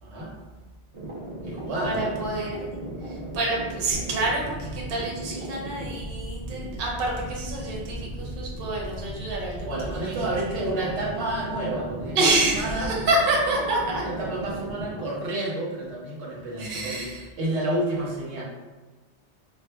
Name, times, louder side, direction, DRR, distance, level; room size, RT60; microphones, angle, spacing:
voice 1, 0.0-0.3 1.4-2.2 9.6-12.9 14.0-18.4, right 1 dB, 80° right, -4 dB, 1.2 m, -30 dB
sound 1, 0.9-15.1, right 1 dB, 40° right, 0.5 m, -37 dB
voice 2, 1.8-2.7 3.1-9.7 10.0-10.9 12.1-14.0 16.6-17.2, right 2 dB, 60° right, -2 dB, 0.8 m, -27 dB
3.8 x 2.6 x 2.2 m, 1.3 s
omnidirectional pair, 1.1 m